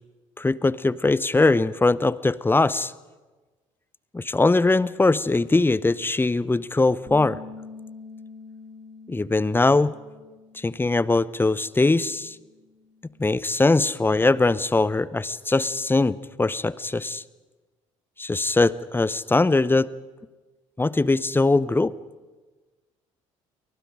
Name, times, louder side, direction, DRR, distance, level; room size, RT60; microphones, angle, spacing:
voice 1, 0.4-2.9 4.1-7.4 9.1-9.9 10.5-12.4 13.2-17.2 18.2-19.9 20.8-21.9, left 3 dB, 15° left, 20 dB, 0.9 m, -21 dB
Bass guitar, 7.1-11.4 11.7-13.3, left 3 dB, 30° right, 5.1 m, -45 dB
29.5 x 25.0 x 5.1 m, 1.3 s
figure-of-eight pair, 50°, 17 cm